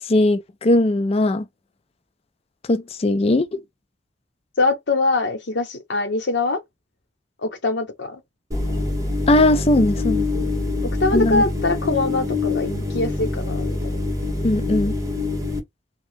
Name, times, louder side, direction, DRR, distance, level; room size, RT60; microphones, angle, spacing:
voice 1, 0.1-1.4 2.7-3.6 9.3-10.3 11.1-11.4 14.4-14.9, left 2 dB, 35° left, 0.4 m, -19 dB
voice 2, 4.6-6.6 7.4-8.2 10.3-10.5 11.0-14.0, left 3 dB, 70° left, 1.0 m, -23 dB
sound 1, 8.5-15.6, left 3 dB, 20° right, 1.1 m, -25 dB
2.8 x 2.3 x 3.4 m
head